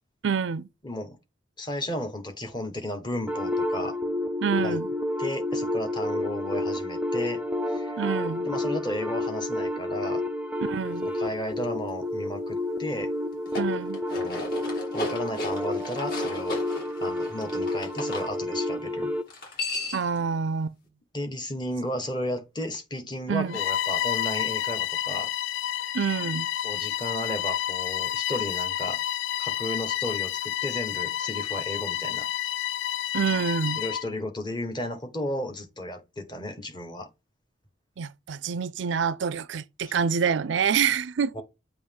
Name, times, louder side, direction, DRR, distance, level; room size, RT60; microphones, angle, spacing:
voice 1, 0.2-0.7 4.4-4.9 8.0-8.5 10.6-11.1 13.6-14.0 19.9-20.8 23.3-23.6 25.9-26.5 33.1-33.8 38.0-41.3, right 6 dB, 70° right, 0.4 m, -27 dB
voice 2, 0.8-1.2 1.6-3.9 4.6-4.8 5.2-7.4 7.7-8.0 8.4-10.2 11.0-13.1 14.1-14.5 14.9-16.6 17.0-19.1 21.1-25.3 26.6-29.0 29.4-32.3 33.8-37.1 39.8-40.0 41.3-41.4, left 1 dB, 20° left, 1.4 m, -34 dB
sound 1, 3.3-19.3, left 1 dB, 5° right, 0.5 m, -30 dB
sound 2, 13.3-18.3 19.3-20.2, left 2 dB, 50° left, 3.3 m, -35 dB
Bowed string instrument, 23.5-34.1, left 12 dB, 80° left, 0.4 m, -30 dB
7.7 x 3.0 x 5.3 m
head